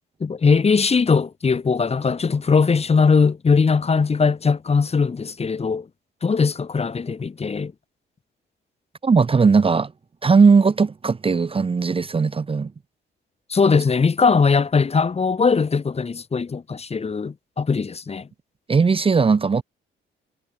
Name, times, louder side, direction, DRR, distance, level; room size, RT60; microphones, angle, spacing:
voice 1, 0.2-5.9 6.2-7.7 13.5-18.3, left 5 dB, 30° left, 1.8 m, -20 dB
voice 2, 9.0-9.9 10.2-12.7 18.7-19.6, right 5 dB, 25° right, 1.0 m, -18 dB
cardioid pair, 90°, 20 cm